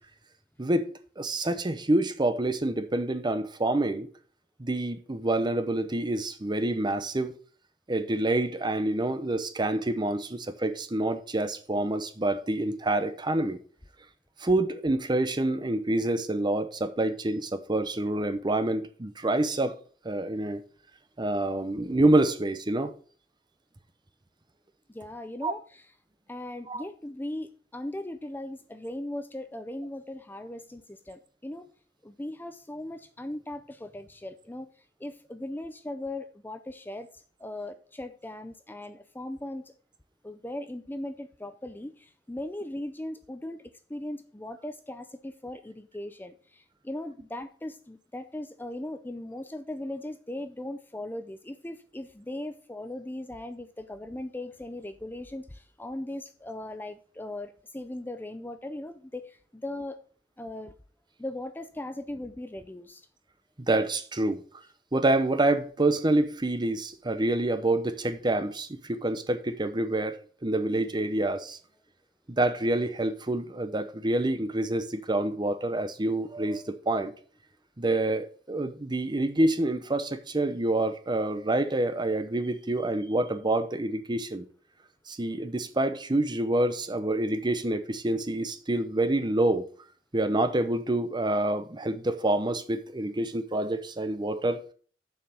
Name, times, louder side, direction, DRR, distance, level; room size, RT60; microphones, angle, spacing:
voice 1, 0.6-0.9 1.2-4.1 4.6-7.4 7.9-13.6 14.4-19.8 20.0-20.6 21.2-22.9 25.4-25.5 26.7-26.8 63.6-64.4 64.9-71.6 72.3-77.1 77.8-84.5 85.1-89.7 90.1-94.6, right 2 dB, 25° right, 0.8 m, -27 dB
voice 2, 24.9-25.8 26.3-31.7 32.0-34.7 35.0-37.1 37.4-39.7 40.2-43.6 43.9-60.0 60.4-60.7 61.2-63.1, left 1 dB, 10° left, 0.5 m, -38 dB
7.1 x 5.7 x 6.4 m
head